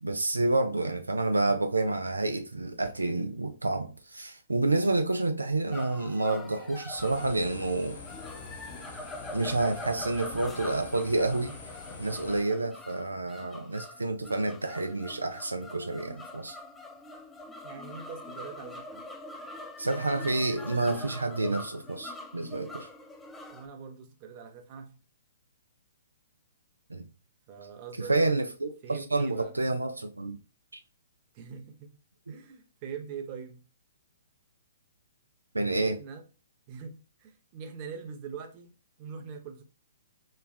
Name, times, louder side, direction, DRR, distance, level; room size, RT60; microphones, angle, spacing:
voice 1, 0.0-8.0 9.3-11.5 12.0-16.6 19.8-22.9 26.9-27.1 28.1-30.4 35.5-36.0, right 2 dB, 85° right, 0.4 m, -29 dB
sound 1, 5.7-23.7, left 2 dB, 10° left, 0.3 m, -44 dB
sound 2, 7.0-12.4, left 3 dB, 45° left, 1.1 m, -44 dB
voice 2, 17.6-19.1 23.5-25.0 27.5-28.2 28.8-29.6 31.3-31.9 32.3-33.6 35.7-36.2 36.7-38.7 39.0-39.6, right 6 dB, 35° right, 0.6 m, -43 dB
3.1 x 2.3 x 2.3 m
figure-of-eight pair, 125°, 0 cm